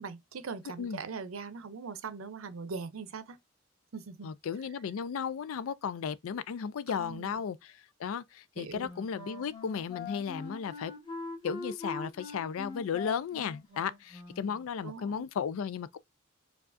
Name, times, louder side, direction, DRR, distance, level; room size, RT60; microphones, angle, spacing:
voice 1, 0.0-3.4 3.9-4.3 6.9-7.4 8.6-8.9 14.8-15.3, right 5 dB, 80° right, 0.6 m, -41 dB
voice 2, 4.2-10.9 11.4-16.0, left 7 dB, 85° left, 0.4 m, -35 dB
Wind instrument woodwind instrument, 8.8-14.7, left 3 dB, 25° left, 1.7 m, -43 dB
4.7 x 2.4 x 2.5 m
head